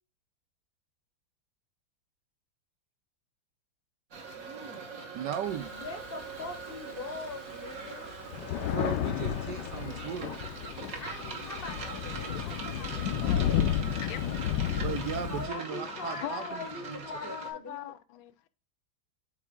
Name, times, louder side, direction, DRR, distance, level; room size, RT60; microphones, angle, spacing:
sound 1, 4.1-17.5, right 5 dB, 50° right, 1.5 m, -42 dB
voice 1, 5.1-5.7 8.7-10.4 14.7-17.4, right 9 dB, 70° right, 1.1 m, -37 dB
Thunder, 5.5-6.7 7.3-7.4 7.6-15.5, left 10 dB, 70° left, 1.0 m, -32 dB
voice 2, 5.7-8.2 11.0-13.8 15.3-17.9, left 3 dB, 40° left, 0.8 m, -42 dB
voice 3, 13.8-14.5 14.7-14.8 15.5-18.3, left 12 dB, 90° left, 1.4 m, -42 dB
8.3 x 3.4 x 3.4 m
omnidirectional pair, 2.2 m